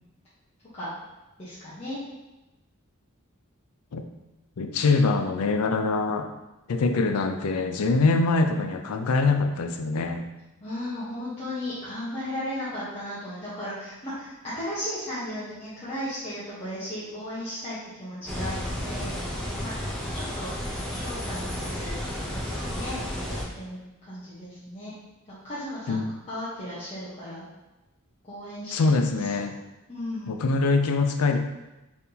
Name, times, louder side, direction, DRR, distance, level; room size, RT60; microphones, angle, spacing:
voice 1, 1.4-2.0 10.6-19.1 19.6-19.8 20.1-20.5 20.9-22.0 22.3-24.9 25.3-27.4 28.2-29.3 29.9-30.4, left 1 dB, 30° left, -11 dB, 1.0 m, -36 dB
voice 2, 4.6-6.3 6.7-10.3 25.9-26.1 28.7-29.6 30.3-31.4, left 3 dB, 80° left, 6 dB, 0.4 m, -24 dB
sound 1, 18.3-23.4, equal, 5° left, 0.7 m, -32 dB
4.3 x 3.5 x 2.8 m, 1.0 s
head